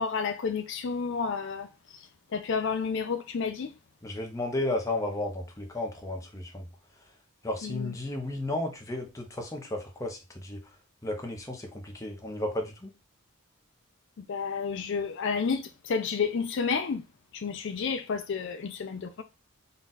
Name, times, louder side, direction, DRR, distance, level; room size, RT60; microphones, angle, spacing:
voice 1, 0.0-1.7 2.3-3.7 7.6-7.9 14.3-17.0 17.3-19.2, left 5 dB, 55° left, 0.4 m, -30 dB
voice 2, 4.0-6.7 7.4-10.6 11.0-12.9, left 1 dB, 15° left, 0.8 m, -33 dB
4.0 x 2.4 x 3.9 m
head